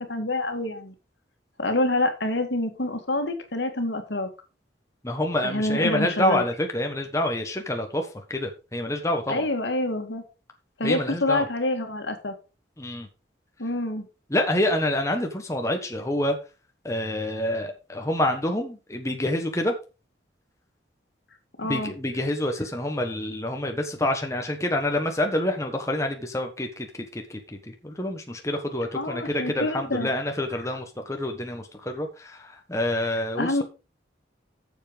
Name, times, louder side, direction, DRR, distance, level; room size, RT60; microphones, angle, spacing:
voice 1, 0.1-0.9 1.6-4.3 5.4-6.4 9.3-10.2 10.8-12.3 13.6-14.0 21.6-21.9 28.9-30.1 33.4-33.6, left 2 dB, 70° left, 2.0 m, -27 dB
voice 2, 5.0-9.5 10.8-11.5 12.8-13.1 14.3-16.4 16.8-19.7 21.6-26.9 27.1-27.4 27.7-33.6, left 1 dB, 15° left, 1.3 m, -27 dB
8.5 x 7.3 x 5.2 m
head